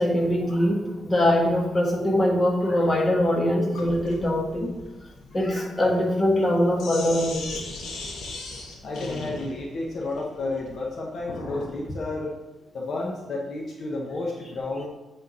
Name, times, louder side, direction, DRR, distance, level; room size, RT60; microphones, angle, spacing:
voice 1, 0.0-4.7 5.3-7.6, left 1 dB, 25° left, -1 dB, 1.6 m, -22 dB
Sink (filling or washing), 3.7-11.7, left 2 dB, 85° left, 1.4 m, -38 dB
voice 2, 8.8-12.3 12.7-14.9, left 2 dB, 55° left, -1 dB, 1.0 m, -31 dB
8.5 x 3.6 x 5.3 m, 1.1 s
cardioid pair, 110°, 0 cm